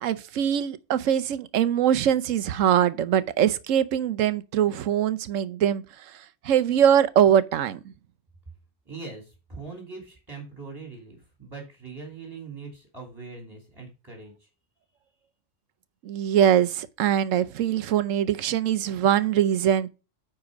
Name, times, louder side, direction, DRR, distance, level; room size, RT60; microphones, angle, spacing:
voice 1, 0.0-5.8 6.4-7.8 16.0-19.9, right 9 dB, 80° right, 1.1 m, -22 dB
voice 2, 8.9-14.5, right 4 dB, 20° right, 2.5 m, -41 dB
9.7 x 4.4 x 5.0 m
omnidirectional pair, 1.3 m